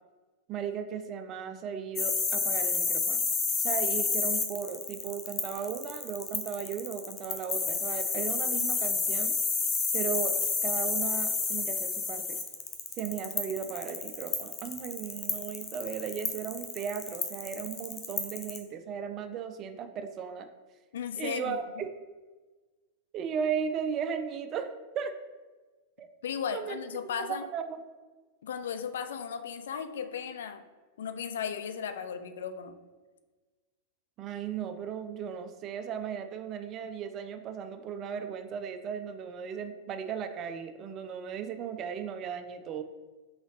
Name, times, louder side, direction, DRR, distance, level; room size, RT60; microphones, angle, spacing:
voice 1, 0.5-3.2 3.6-9.3 9.9-10.3 10.6-12.2 13.0-20.5 21.2-21.9 23.1-24.7 25.0-25.1 26.0-26.1 26.5-26.8 27.2-27.8 34.2-42.8, right 7 dB, 35° right, 8 dB, 0.4 m, -36 dB
sound 1, 2.0-18.6, left 5 dB, 25° left, 0.7 m, -30 dB
voice 2, 20.9-21.6 26.2-27.4 28.4-30.6 31.0-32.8, left 7 dB, 60° left, 9 dB, 0.3 m, -36 dB
3.9 x 3.9 x 3.1 m, 1.3 s
figure-of-eight pair, 90°, 0 cm